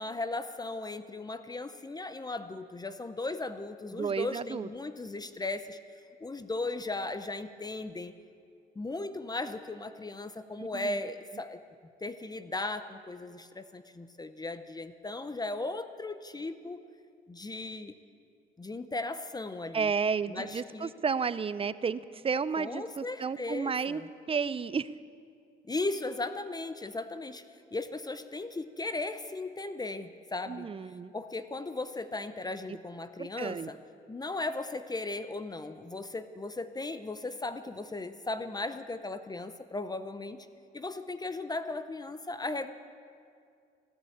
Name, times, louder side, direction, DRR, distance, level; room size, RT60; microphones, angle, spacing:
voice 1, 0.0-5.8 6.2-8.1 8.8-11.6 12.0-16.8 17.3-18.0 18.6-19.9 20.3-20.9 22.6-24.1 25.6-27.5 27.7-30.7 31.1-33.8 34.1-40.5 40.7-42.7, left 2 dB, 20° left, 11 dB, 0.7 m, -37 dB
voice 2, 3.9-4.7 10.6-11.0 19.7-24.0 24.3-24.9 30.5-31.1 33.2-33.7, right 6 dB, 30° right, 16 dB, 0.5 m, -32 dB
15.0 x 10.5 x 8.6 m, 2.3 s
cardioid pair, 90°, 20 cm